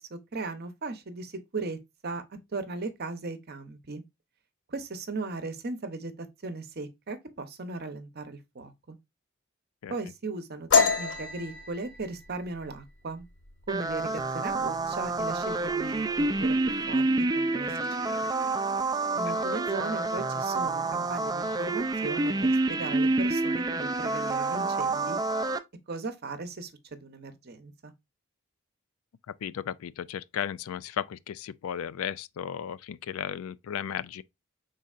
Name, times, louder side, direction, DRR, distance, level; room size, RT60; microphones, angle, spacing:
voice 1, 0.0-1.8 2.0-2.2 2.5-4.0 4.7-9.0 9.9-13.3 13.7-17.1 17.3-17.8 18.1-18.3 19.1-25.2 25.9-27.9, right 3 dB, 50° right, 0.8 m, -37 dB
sound 1, 10.7-14.1 14.5-14.8 15.2-15.7 16.0-16.7, left 5 dB, 60° left, 1.0 m, -28 dB
sound 2, 13.7-25.6, right 2 dB, 20° right, 0.3 m, -28 dB
voice 2, 29.3-34.2, left 9 dB, 75° left, 0.3 m, -35 dB
5.3 x 3.9 x 2.4 m
head